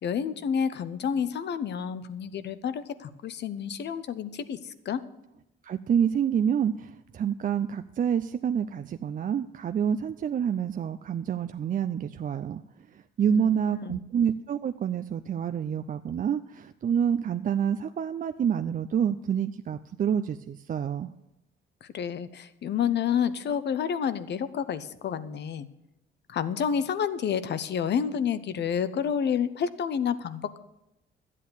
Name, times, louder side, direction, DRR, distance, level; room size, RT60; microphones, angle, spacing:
voice 1, 0.0-5.0 13.3-14.0 21.8-25.7 26.3-30.6, left 7 dB, 60° left, 13 dB, 0.8 m, -29 dB
voice 2, 5.6-12.6 12.9-21.1, right 8 dB, 45° right, 9 dB, 0.5 m, -28 dB
12.0 x 8.4 x 6.9 m, 0.91 s
cardioid pair, 90°, 20 cm